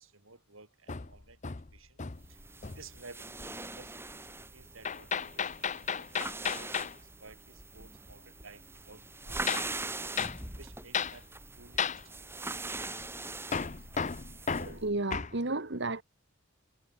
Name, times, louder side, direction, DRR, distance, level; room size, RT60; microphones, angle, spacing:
voice 1, 0.0-12.4, right 3 dB, 75° right, 6.6 m, -56 dB
Hammer, 0.9-2.3 2.6-3.0 4.8-7.0 9.5-9.7 10.2-10.4 10.9-11.2 11.8-12.0 13.5-15.4, left 6 dB, 35° left, 0.8 m, -34 dB
sound 1, 2.2-14.8, right 2 dB, 10° right, 7.0 m, -42 dB
voice 2, 14.6-16.0, right 2 dB, 55° right, 1.5 m, -33 dB
head